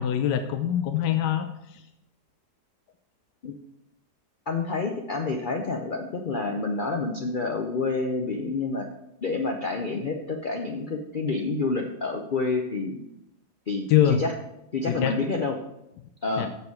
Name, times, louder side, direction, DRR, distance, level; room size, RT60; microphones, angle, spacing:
voice 1, 0.0-1.5 13.9-14.2 14.9-15.1 16.4-16.5, left 10 dB, 85° left, 8 dB, 1.2 m, -23 dB
voice 2, 4.5-8.9 9.2-13.0 13.7-14.3 14.7-15.6 16.2-16.5, left 3 dB, 60° left, 3 dB, 0.5 m, -28 dB
7.1 x 6.8 x 4.7 m, 0.85 s
omnidirectional pair, 1.8 m